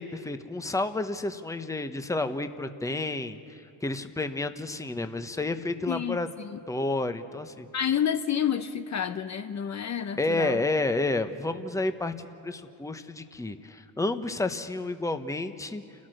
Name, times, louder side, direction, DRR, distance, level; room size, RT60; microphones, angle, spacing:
voice 1, 0.0-6.3 6.7-7.7 10.2-15.8, left 2 dB, 5° left, 9 dB, 1.1 m, -30 dB
voice 2, 5.9-6.6 7.7-10.6, left 9 dB, 35° left, 9 dB, 0.9 m, -29 dB
29.5 x 14.0 x 6.6 m, 2.7 s
supercardioid pair, 80°, 46 cm